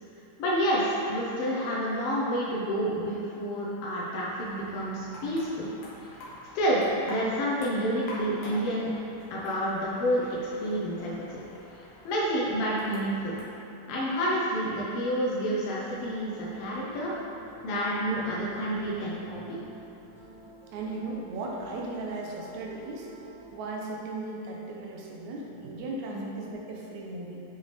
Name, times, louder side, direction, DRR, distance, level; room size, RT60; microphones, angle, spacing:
voice 1, 0.4-5.7 6.0-6.1 6.5-8.9 9.3-11.4 12.0-13.4 13.9-17.1 17.6-19.6 26.1-26.2, equal, 75° left, -5 dB, 1.4 m, -29 dB
sound 1, 4.3-13.4, left 1 dB, 60° left, 2.1 m, -47 dB
sound 2, 14.7-23.5, right 2 dB, 45° right, 2.1 m, -50 dB
voice 2, 20.7-23.1 23.5-27.4, right 2 dB, 75° right, -2 dB, 2.0 m, -37 dB
7.9 x 5.2 x 3.4 m, 3.0 s
omnidirectional pair, 3.7 m